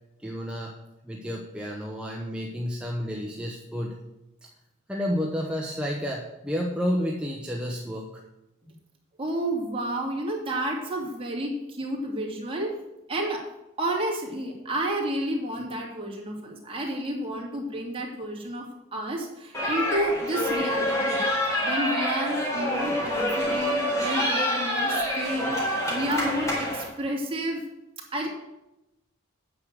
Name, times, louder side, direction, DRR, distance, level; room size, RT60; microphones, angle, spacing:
voice 1, 0.2-0.8 1.0-4.0 4.9-8.2, equal, 5° right, -1 dB, 0.9 m, -30 dB
voice 2, 9.2-12.7 13.1-13.4 13.8-21.2 21.6-27.6 28.1-28.3, right 1 dB, 25° right, -1 dB, 2.5 m, -30 dB
sound 1, 19.5-26.8, left 1 dB, 15° left, 4.1 m, -27 dB
9.3 x 6.5 x 7.9 m, 0.93 s
head